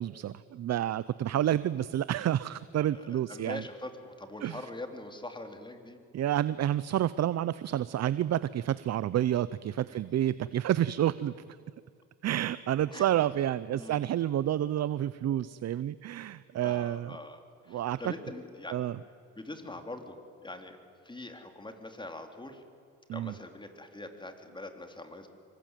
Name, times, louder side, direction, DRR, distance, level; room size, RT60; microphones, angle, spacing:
voice 1, 0.0-3.6 4.4-4.7 6.1-11.3 12.2-17.1 17.7-18.0 18.7-19.0 23.1-23.3, right 12 dB, 60° right, 16 dB, 0.7 m, -29 dB
voice 2, 2.9-6.0 9.9-10.0 12.9-13.1 13.7-14.0 16.6-18.8 19.4-20.8 21.0-22.6 23.1-25.3, left 2 dB, 15° left, 6 dB, 3.7 m, -43 dB
26.5 x 24.0 x 9.2 m, 2.4 s
cardioid pair, 90°, 30 cm